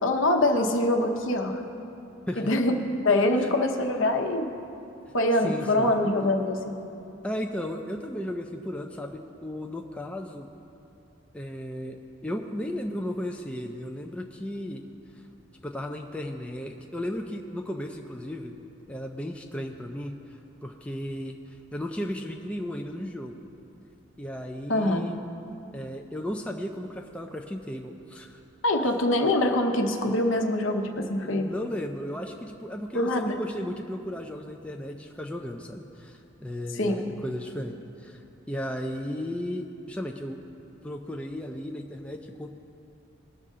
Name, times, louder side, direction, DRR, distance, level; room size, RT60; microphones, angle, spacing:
voice 1, 0.0-1.6 2.4-2.8 3.0-4.5 5.1-6.7 24.7-25.1 28.6-31.5 32.9-33.4 36.7-37.0, left 1 dB, 70° left, 4 dB, 0.9 m, -24 dB
voice 2, 5.4-5.9 7.2-10.5 11.3-14.8 15.6-18.6 18.9-23.4 24.2-25.2 25.7-28.4 28.8-29.0 31.2-40.4 40.8-42.5, left 1 dB, 5° left, 2 dB, 0.4 m, -35 dB
19.5 x 6.6 x 3.7 m, 2.8 s
head